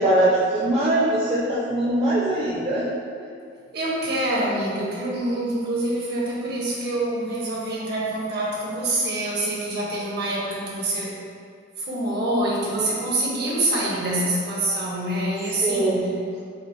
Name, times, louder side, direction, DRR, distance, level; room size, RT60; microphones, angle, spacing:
voice 1, 0.0-2.9 12.2-12.4 12.7-12.9 15.6-16.2, right 1 dB, 30° right, -6 dB, 0.4 m, -22 dB
voice 2, 3.7-11.1 11.8-16.1, right 1 dB, 60° right, -4 dB, 0.8 m, -26 dB
5.4 x 2.0 x 3.0 m, 2.2 s
head